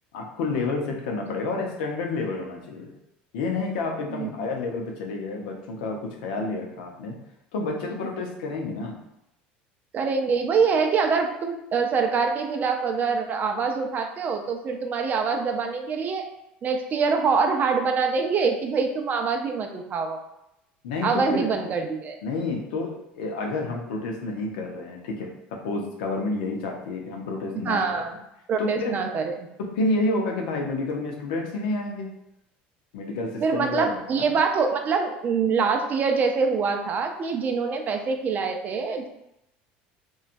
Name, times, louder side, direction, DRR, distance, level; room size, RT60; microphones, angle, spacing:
voice 1, 0.1-2.9 3.3-7.2 7.5-9.0 20.8-21.5 22.2-28.0 28.6-29.0 29.6-32.1 32.9-34.3, left 3 dB, 85° left, 2 dB, 0.6 m, -29 dB
voice 2, 9.9-16.2 16.6-20.2 21.0-22.2 27.6-28.2 28.5-29.3 33.4-39.1, right 5 dB, 40° right, 4 dB, 0.4 m, -24 dB
3.0 x 2.3 x 2.5 m, 0.86 s
supercardioid pair, 100°, 5 cm